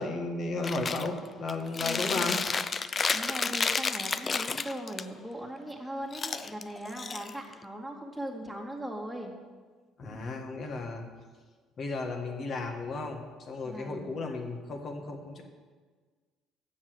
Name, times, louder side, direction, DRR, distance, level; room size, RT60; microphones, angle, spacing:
voice 1, 0.0-2.4 10.0-11.1 11.8-13.2 13.5-15.4, left 3 dB, 50° left, 4 dB, 1.5 m, -34 dB
Chewing mastication, 0.6-1.1 1.5-5.0 6.1-7.6, left 5 dB, 35° left, 0.4 m, -31 dB
voice 2, 1.8-2.4 3.1-9.3 10.0-10.2 13.6-14.1, right 1 dB, ahead, 0 dB, 2.0 m, -39 dB
7.2 x 6.6 x 7.8 m, 1.5 s
supercardioid pair, 75°, 0 cm